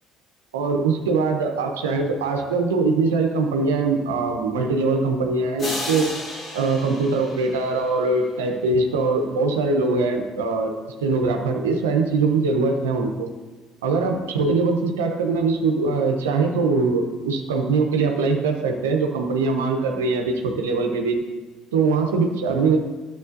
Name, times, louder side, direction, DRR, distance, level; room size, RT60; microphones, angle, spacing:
voice 1, 0.5-6.2 6.5-10.7 11.0-13.3 13.8-21.2 21.7-22.8, right 3 dB, 85° right, 3 dB, 0.8 m, -22 dB
sound 1, 5.6-8.4, left 1 dB, 45° left, 2.8 m, -33 dB
10.5 x 7.2 x 2.6 m, 1.3 s
hypercardioid pair, 60°, 0 cm